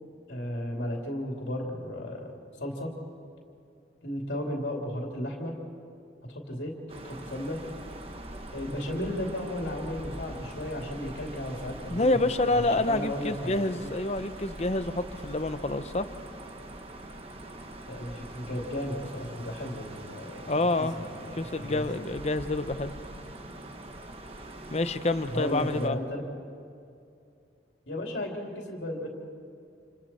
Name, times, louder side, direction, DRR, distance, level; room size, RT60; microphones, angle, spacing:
voice 1, 0.3-2.3 2.6-2.9 4.0-5.6 6.3-6.7 7.0-7.6 8.5-12.2 12.5-13.6 13.8-13.9 17.9-20.7 21.0-21.8 25.3-26.2 27.9-29.1, left 1 dB, 80° left, -1 dB, 3.0 m, -34 dB
sound 1, 6.9-25.9, right 1 dB, 35° right, 1.4 m, -43 dB
voice 2, 11.9-16.1 20.5-21.0 21.4-22.9 24.7-26.0, left 2 dB, 35° left, 11 dB, 0.8 m, -27 dB
29.0 x 28.5 x 4.4 m, 2.5 s
head